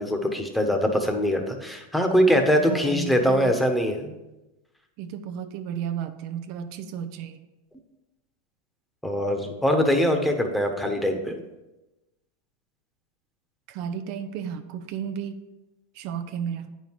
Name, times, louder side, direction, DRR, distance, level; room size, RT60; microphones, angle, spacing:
voice 1, 0.0-4.1 9.0-11.4, equal, 5° left, 4 dB, 1.2 m, -23 dB
voice 2, 2.5-3.6 5.0-7.4 13.7-15.4 15.9-16.7, right 8 dB, 55° right, 9 dB, 0.7 m, -33 dB
9.0 x 5.6 x 4.7 m, 1.0 s
hypercardioid pair, 115°, 0 cm